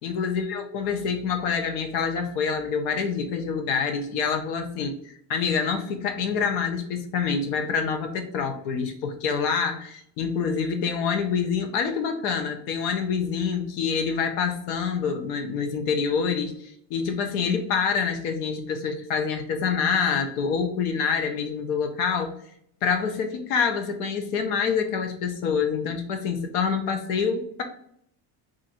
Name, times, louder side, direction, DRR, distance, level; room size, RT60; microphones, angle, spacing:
voice 1, 0.0-5.0 5.3-22.4 22.8-27.6, left 6 dB, 90° left, 5 dB, 0.8 m, -26 dB
2.5 x 2.5 x 4.1 m, 0.68 s
supercardioid pair, 105°, 45 cm